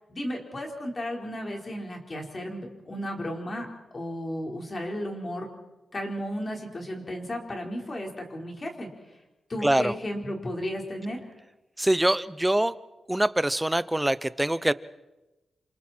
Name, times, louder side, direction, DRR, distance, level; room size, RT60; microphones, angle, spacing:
voice 1, 0.1-3.7 3.9-5.5 5.9-8.9 9.5-11.2, equal, 30° left, 1 dB, 4.5 m, -34 dB
voice 2, 9.6-9.9 11.8-12.7 13.1-14.7, right 1 dB, 10° right, 16 dB, 0.7 m, -24 dB
28.5 x 27.0 x 4.5 m, 1.0 s
cardioid pair, 95°, 0 cm